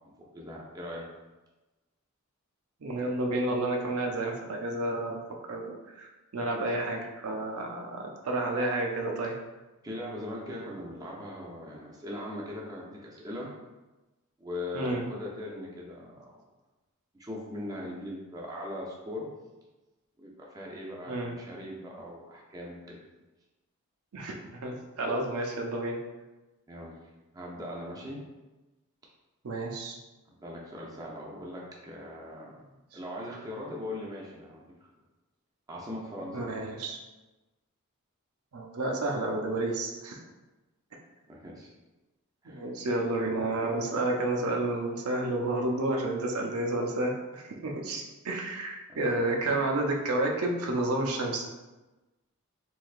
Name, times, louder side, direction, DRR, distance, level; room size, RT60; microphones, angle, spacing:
voice 1, 0.2-1.0 9.8-13.5 14.4-16.4 17.2-19.3 20.2-23.0 26.7-26.9 27.3-28.2 30.3-32.6 32.9-34.7 35.7-36.5 41.3-41.7 42.4-42.6 48.9-49.2, left 1 dB, 15° right, -3 dB, 0.5 m, -40 dB
voice 2, 2.8-9.4 14.7-15.0 21.1-21.3 24.1-26.0 29.4-30.0 36.3-37.0 38.5-40.2 42.5-51.5, right 2 dB, 90° right, 1 dB, 0.6 m, -30 dB
3.4 x 3.3 x 2.4 m, 1.1 s
head